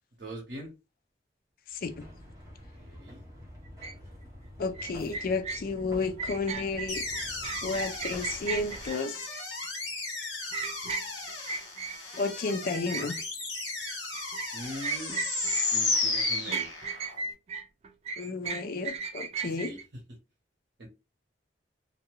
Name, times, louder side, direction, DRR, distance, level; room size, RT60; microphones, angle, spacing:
voice 1, 0.2-0.7 2.7-3.2 14.5-15.1 15.7-16.7 19.6-19.8 20.8-20.9, right 1 dB, 75° right, 0.9 m, -41 dB
sound 1, 1.8-8.9, equal, 20° right, 0.9 m, -47 dB
sound 2, 3.8-3.9 4.8-12.3 12.7-15.7 15.9-19.8, right 5 dB, 35° right, 0.3 m, -36 dB
voice 2, 4.6-7.0 7.6-9.3 12.2-13.2 18.2-19.7, left 3 dB, 55° left, 0.4 m, -32 dB
sound 3, 6.9-17.2, left 3 dB, 75° left, 1.2 m, -34 dB
2.6 x 2.2 x 3.0 m
head